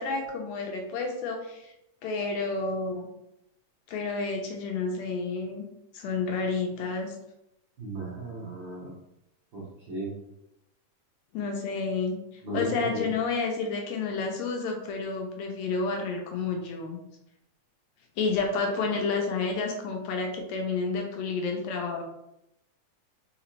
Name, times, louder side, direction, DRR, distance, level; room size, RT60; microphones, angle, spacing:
voice 1, 0.0-1.7 2.0-3.1 3.9-5.6 5.9-7.1 11.3-12.2 12.5-17.0 18.2-22.0, left 4 dB, 75° left, 3 dB, 1.7 m, -30 dB
voice 2, 7.8-8.9 9.5-10.1 12.4-13.1 18.8-19.0, right 1 dB, 60° right, -6 dB, 1.2 m, -35 dB
4.9 x 3.2 x 3.2 m, 0.84 s
omnidirectional pair, 3.5 m